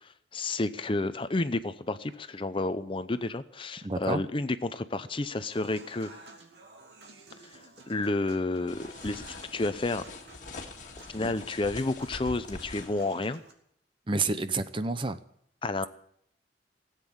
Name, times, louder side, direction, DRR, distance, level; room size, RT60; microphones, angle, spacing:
voice 1, 0.0-6.1 7.5-7.6 7.9-10.1 11.0-13.4 15.6-15.9, left 2 dB, 30° left, 12 dB, 0.7 m, -31 dB
voice 2, 3.8-4.2 14.1-15.2, right 3 dB, 30° right, 11 dB, 0.7 m, -29 dB
Human voice / Acoustic guitar / Piano, 5.5-13.5, right 3 dB, 70° right, 2.5 m, -53 dB
sound 1, 8.7-13.0, left 2 dB, 45° left, 1.8 m, -43 dB
17.0 x 8.3 x 8.6 m, 0.69 s
head